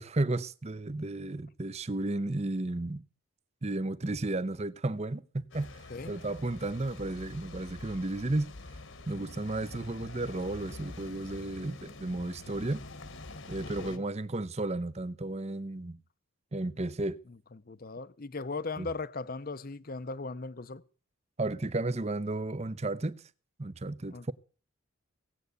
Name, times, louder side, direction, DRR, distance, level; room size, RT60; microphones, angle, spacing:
voice 1, 0.0-3.0 3.6-8.5 9.1-12.8 13.5-16.0 16.5-17.2 18.8-18.9 21.4-23.3 23.6-24.3, right 2 dB, 30° right, 0.7 m, -33 dB
sound 1, 5.5-14.0, left 2 dB, 60° left, 1.4 m, -46 dB
voice 2, 13.6-14.0 17.3-20.8 24.1-24.3, left 3 dB, 40° left, 0.7 m, -39 dB
18.0 x 7.8 x 8.2 m
head